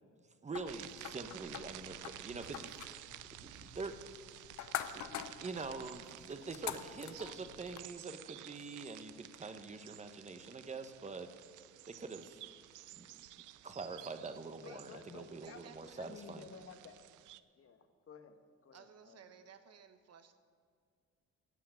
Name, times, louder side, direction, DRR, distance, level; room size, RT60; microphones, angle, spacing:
voice 1, 0.4-3.1 3.4-4.0 4.9-11.3 11.9-12.4 13.0-13.2 13.6-16.5, right 4 dB, 25° right, 8 dB, 1.0 m, -45 dB
sound 1, 0.5-7.9, left 11 dB, 70° left, 0.7 m, -46 dB
sound 2, 0.7-17.4, right 14 dB, 80° right, 0.5 m, -53 dB
voice 2, 14.5-15.6 15.9-17.0 17.5-19.3, left 6 dB, 50° left, 7 dB, 1.2 m, -54 dB
voice 3, 15.4-16.2 18.7-20.4, right 7 dB, 55° right, 9 dB, 1.1 m, -58 dB
15.5 x 5.7 x 8.9 m, 2.2 s
cardioid pair, 90°, 30 cm